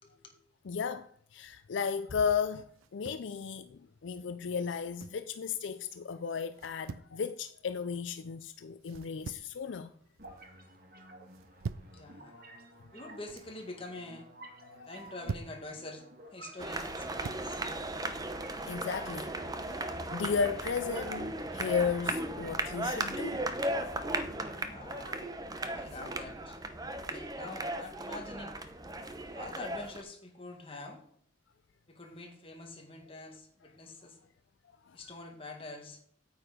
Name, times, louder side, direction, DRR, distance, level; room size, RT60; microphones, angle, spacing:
voice 1, 0.0-0.3 11.9-12.3 12.9-14.3 14.9-16.1 16.3-17.6 24.7-25.2 25.7-26.6 27.0-28.6 29.3-31.0 31.9-34.2 34.9-36.0, left 2 dB, 30° left, 1.8 m, -46 dB
voice 2, 0.6-2.7 2.9-9.9 12.3-12.5 14.6-14.9 18.2-18.3 18.7-19.3 19.6-23.5 34.9-35.0, left 6 dB, 65° left, 0.4 m, -35 dB
sound 1, 2.8-3.3 4.6-5.3 6.5-7.1 8.8-9.6 10.0-10.4 11.3-12.0 13.0-13.5 14.8-15.6 16.7-17.5, right 5 dB, 90° right, 0.5 m, -43 dB
sound 2, 10.2-26.2, right 2 dB, 50° right, 1.6 m, -52 dB
sound 3, 16.6-30.0, right 1 dB, 20° right, 0.7 m, -36 dB
9.0 x 8.1 x 5.1 m
head